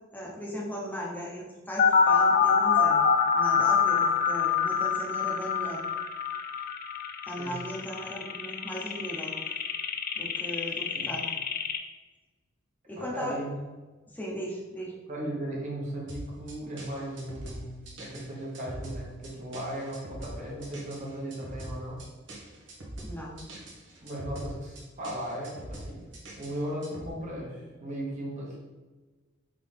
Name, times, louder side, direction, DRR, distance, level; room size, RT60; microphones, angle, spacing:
voice 1, 0.1-3.0 3.3-5.8 7.3-9.3 10.2-11.2 12.9-13.4 14.1-14.9 23.0-23.3, equal, 10° left, -4 dB, 0.9 m, -37 dB
sound 1, 1.8-11.8, left 6 dB, 50° left, 0.4 m, -25 dB
voice 2, 13.0-13.5 15.1-22.0 24.0-26.1 26.4-28.6, right 1 dB, 40° right, -4 dB, 1.2 m, -37 dB
sound 2, 16.1-27.1, right 1 dB, 65° right, 1.0 m, -42 dB
3.8 x 3.7 x 3.4 m, 1.3 s
head